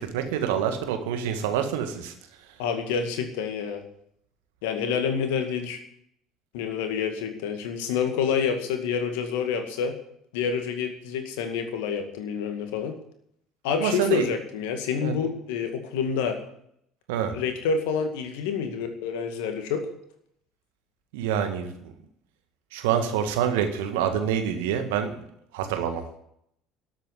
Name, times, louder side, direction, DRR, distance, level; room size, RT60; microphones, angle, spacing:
voice 1, 0.1-2.1 13.8-14.3 15.0-15.1 17.1-17.3 21.1-21.7 22.7-25.1 25.5-26.0, right 9 dB, 70° right, 7 dB, 1.8 m, -26 dB
voice 2, 2.6-3.8 4.6-5.8 6.5-9.9 10.3-12.9 13.6-16.4 17.3-19.8, left 6 dB, 65° left, 6 dB, 2.1 m, -28 dB
12.5 x 8.2 x 9.9 m, 0.72 s
figure-of-eight pair, 60°, 0 cm